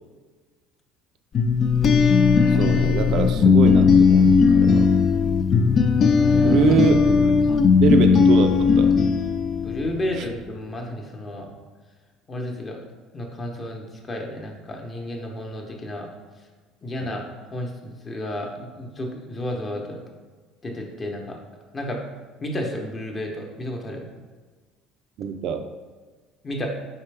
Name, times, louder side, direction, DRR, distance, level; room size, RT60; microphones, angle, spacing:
sound 1, 1.3-10.1, left 5 dB, 45° left, 0.3 m, -17 dB
voice 1, 2.5-4.9 6.4-7.0 7.8-9.0 25.2-25.7, right 6 dB, 60° right, 6 dB, 0.4 m, -23 dB
voice 2, 6.3-6.6 9.6-11.5 12.3-12.8 13.1-16.1 16.8-17.2 17.5-20.0 20.6-21.4 21.7-22.0 22.4-24.1 26.4-26.7, left 1 dB, 30° left, 1 dB, 0.8 m, -32 dB
4.4 x 3.3 x 3.3 m, 1.4 s
supercardioid pair, 95°, 0 cm